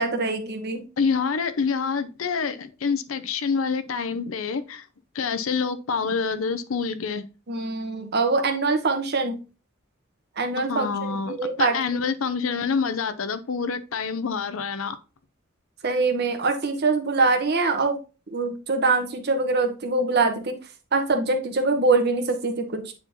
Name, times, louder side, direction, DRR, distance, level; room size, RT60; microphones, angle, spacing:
voice 1, 0.0-0.8 7.5-9.4 10.4-10.9 11.3-11.7 15.8-18.0 18.3-20.5 20.9-22.9, right 3 dB, 50° right, 1.1 m, -23 dB
voice 2, 1.0-4.9 5.1-7.3 10.7-15.0, left 5 dB, 80° left, 0.6 m, -27 dB
9.1 x 4.4 x 2.8 m
head